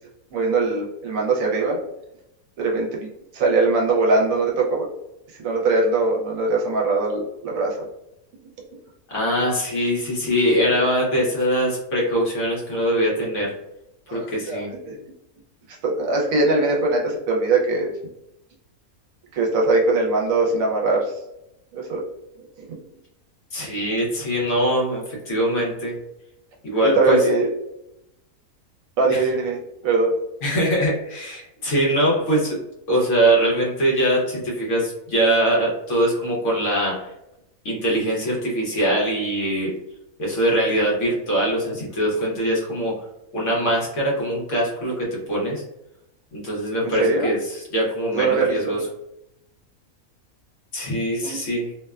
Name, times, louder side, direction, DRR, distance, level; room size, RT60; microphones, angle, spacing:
voice 1, 0.3-1.8 2.6-4.9 5.4-7.8 14.1-15.0 15.8-17.9 19.3-21.0 21.7-22.0 26.8-27.5 29.0-29.6 29.8-30.1 47.0-47.3 48.1-48.8 51.2-51.4, right 3 dB, 70° right, -1 dB, 1.0 m, -21 dB
voice 2, 9.1-13.6 14.1-14.7 23.5-26.0 26.6-27.2 29.1-29.3 30.4-32.6 32.9-37.1 37.6-39.7 40.2-43.0 43.3-45.6 46.3-48.8 50.7-51.7, right 1 dB, 60° left, -4 dB, 1.1 m, -22 dB
2.8 x 2.1 x 2.2 m, 0.86 s
omnidirectional pair, 1.5 m